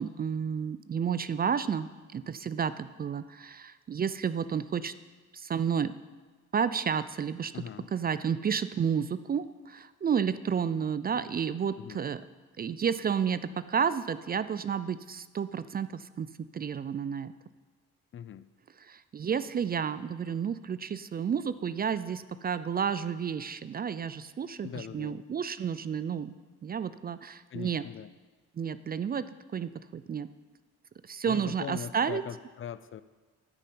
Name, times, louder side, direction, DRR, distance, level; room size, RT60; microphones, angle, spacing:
voice 1, 0.0-4.9 5.3-5.9 6.5-7.7 7.9-12.2 12.6-17.3 18.8-26.3 26.6-27.8 28.6-30.3 31.0-32.2, right 7 dB, 30° right, 15 dB, 0.4 m, -31 dB
voice 2, 7.5-7.9 11.8-12.0 18.1-18.5 24.6-25.2 27.5-28.1 31.3-33.0, left 9 dB, 45° left, 16 dB, 0.5 m, -41 dB
10.5 x 5.7 x 8.4 m, 1.3 s
cardioid pair, 90°, 30 cm